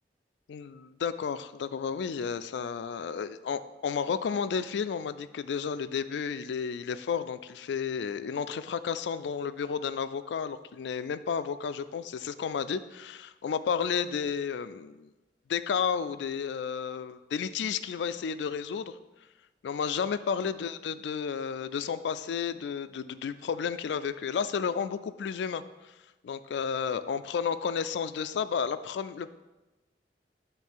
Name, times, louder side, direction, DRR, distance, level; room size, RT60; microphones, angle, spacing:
voice 1, 0.5-15.1 15.5-18.9 19.6-25.6 26.2-29.3, left 6 dB, 80° left, 13 dB, 0.3 m, -32 dB
9.2 x 3.2 x 4.5 m, 1.1 s
head